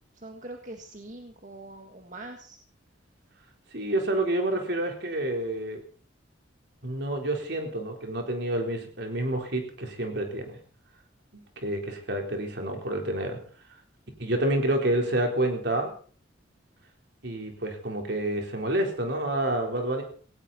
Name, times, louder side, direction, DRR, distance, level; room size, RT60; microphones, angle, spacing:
voice 1, 0.2-2.6, right 2 dB, 40° right, 4 dB, 1.7 m, -43 dB
voice 2, 3.7-5.8 6.8-10.6 11.6-13.4 14.2-15.9 17.2-20.0, right 1 dB, 60° right, 2 dB, 4.1 m, -28 dB
18.5 x 17.0 x 4.3 m, 0.43 s
head